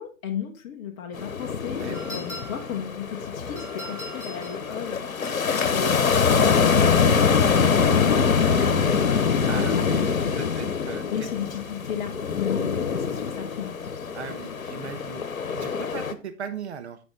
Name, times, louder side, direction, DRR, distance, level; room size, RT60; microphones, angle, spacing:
voice 1, 0.0-5.4 5.7-9.9 10.2-10.6 11.1-13.9, left 8 dB, 20° left, 2 dB, 0.9 m, -34 dB
sound 1, 1.1-16.1, left 6 dB, 85° left, 1.0 m, -24 dB
voice 2, 1.8-2.2 7.6-8.0 9.5-11.3 14.1-17.0, right 6 dB, 55° right, 9 dB, 1.0 m, -38 dB
sound 2, 1.9-2.8 3.6-4.6 5.2-5.7 6.8-7.7, equal, 10° right, 3.9 m, -42 dB
9.5 x 5.4 x 3.8 m, 0.33 s
figure-of-eight pair, 130°, 40 cm